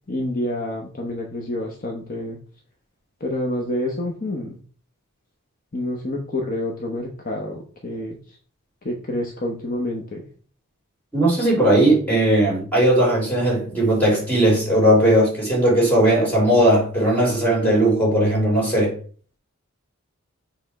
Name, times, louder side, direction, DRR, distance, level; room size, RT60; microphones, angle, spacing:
voice 1, 0.1-2.4 3.2-4.6 5.7-8.2 8.8-10.3, left 1 dB, 40° left, 0.9 m, -28 dB
voice 2, 11.1-19.0, right 1 dB, 10° left, 3.3 m, -18 dB
7.7 x 3.5 x 4.6 m
head